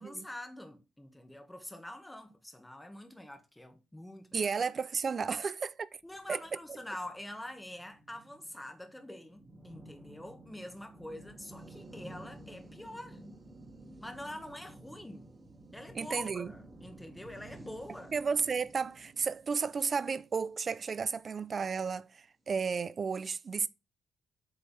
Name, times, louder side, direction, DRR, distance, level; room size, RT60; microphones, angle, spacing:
voice 1, 0.0-4.5 6.0-13.2 14.0-15.3 15.7-18.1, left 1 dB, 5° left, 1.1 m, -45 dB
voice 2, 4.3-5.9 6.3-6.4 15.9-16.5 18.1-23.7, right 5 dB, 35° right, 0.4 m, -33 dB
sound 1, 6.1-21.5, right 1 dB, 15° right, 1.4 m, -53 dB
8.4 x 3.3 x 5.3 m
wide cardioid pair, 160°, 0 cm